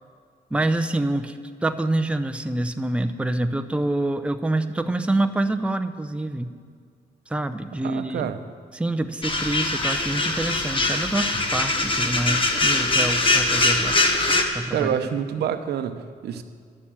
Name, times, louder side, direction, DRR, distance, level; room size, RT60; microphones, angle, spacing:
voice 1, 0.5-1.4 1.6-6.5 7.3-8.3 8.7-13.9 14.5-14.9, right 2 dB, 5° right, 8 dB, 0.6 m, -26 dB
voice 2, 7.8-8.4 14.7-16.4, right 8 dB, 75° right, 9 dB, 0.8 m, -27 dB
sound 1, 9.2-14.4, left 2 dB, 30° left, 1.3 m, -22 dB
11.0 x 7.0 x 8.8 m, 2.1 s
cardioid pair, 90°, 17 cm